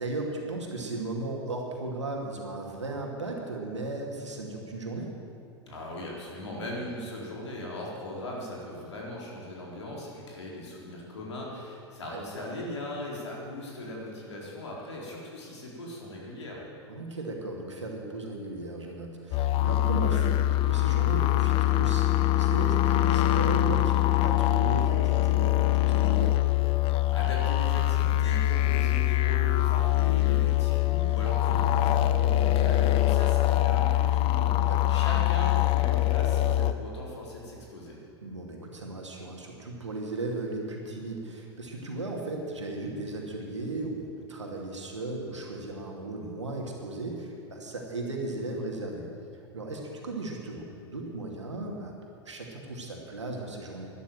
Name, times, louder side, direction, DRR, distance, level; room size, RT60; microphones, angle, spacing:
voice 1, 0.0-5.1 12.1-12.2 16.9-26.4 34.6-35.0 38.2-49.1 49.5-51.9 52.2-53.9, right 2 dB, 85° right, 0 dB, 2.5 m, -36 dB
voice 2, 5.7-16.6 27.1-38.0, left 1 dB, 75° left, -3 dB, 4.0 m, -39 dB
sound 1, 19.3-36.7, left 14 dB, 40° left, 0.6 m, -24 dB
12.5 x 11.5 x 7.6 m, 2.7 s
figure-of-eight pair, 90°, 15 cm